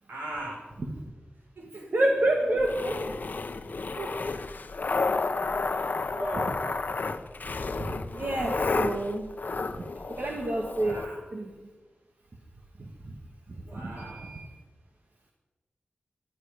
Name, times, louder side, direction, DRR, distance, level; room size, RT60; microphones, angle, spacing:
voice 1, 0.1-0.7 1.5-1.9 6.0-6.9 10.8-11.2 13.6-14.4, right 1 dB, 85° right, -2 dB, 5.1 m, -39 dB
voice 2, 1.9-3.1 4.0-4.1 7.8-9.3 10.2-11.0 11.3-11.5 13.1-13.2 13.7-14.4, right 1 dB, 55° right, 0 dB, 2.0 m, -28 dB
sound 1, 2.6-11.1, left 3 dB, 55° left, 0.9 m, -31 dB
19.5 x 13.0 x 5.2 m, 1.3 s
wide cardioid pair, 90°, 4 cm